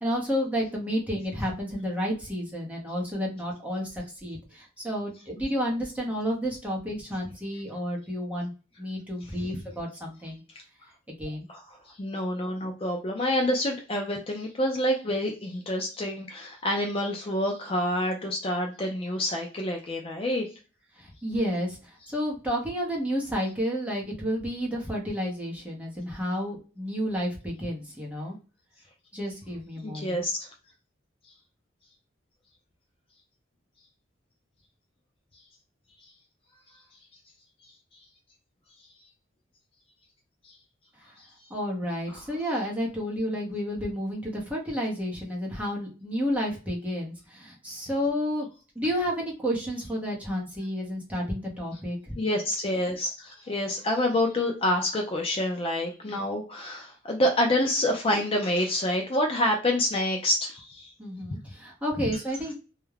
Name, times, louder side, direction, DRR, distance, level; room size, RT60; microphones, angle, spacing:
voice 1, 0.0-8.5 8.8-10.4 11.1-11.5 21.0-28.4 29.1-30.2 41.5-48.5 48.8-52.1 56.1-56.2 61.0-62.5, equal, 5° right, -2 dB, 0.7 m, -31 dB
voice 2, 11.5-20.5 29.8-30.5 42.1-42.2 52.2-60.9, left 1 dB, 30° left, 2 dB, 0.3 m, -27 dB
2.3 x 2.1 x 3.1 m, 0.34 s
head